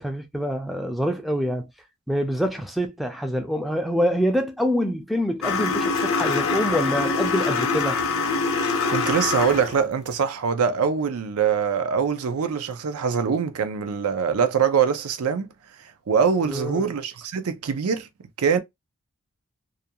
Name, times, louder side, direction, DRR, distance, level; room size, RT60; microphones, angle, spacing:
voice 1, 0.0-1.7 2.1-8.0 16.5-16.9, equal, ahead, 0.3 m, -25 dB
sound 1, 5.4-9.8, left 4 dB, 70° left, 0.6 m, -24 dB
voice 2, 8.9-15.5 16.1-18.1 18.4-18.6, right 6 dB, 90° right, 0.5 m, -23 dB
2.4 x 2.2 x 2.6 m
head